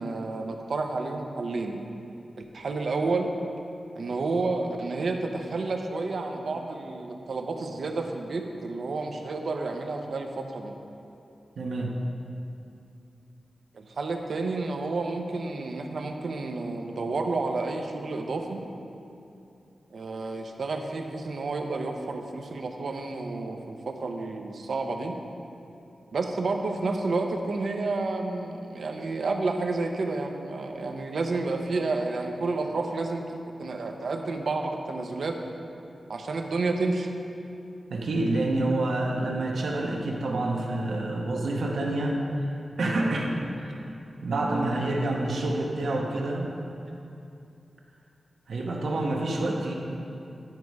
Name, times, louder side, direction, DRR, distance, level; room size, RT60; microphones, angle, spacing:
voice 1, 0.0-1.8 2.5-3.4 4.0-10.8 13.7-18.6 19.9-25.2 26.1-33.2 33.6-35.4 36.1-37.1, right 3 dB, 65° right, 3 dB, 0.7 m, -30 dB
voice 2, 11.6-11.9 37.9-42.5 42.8-43.3 43.7-43.8 44.2-46.5 48.5-49.7, right 2 dB, 85° right, 0 dB, 1.0 m, -27 dB
10.5 x 5.3 x 4.7 m, 2.7 s
wide cardioid pair, 165°, 0 cm